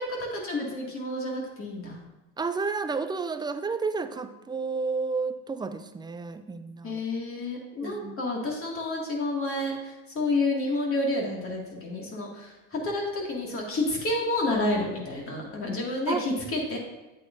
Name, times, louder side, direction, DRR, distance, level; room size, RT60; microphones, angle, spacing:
voice 1, 0.0-2.0 6.8-16.8, left 2 dB, 40° left, -2 dB, 2.2 m, -30 dB
voice 2, 2.4-7.0 7.8-8.2 16.1-16.3, right 4 dB, 15° right, 10 dB, 0.5 m, -31 dB
8.5 x 8.2 x 2.6 m, 1.1 s
supercardioid pair, 90°, 35 cm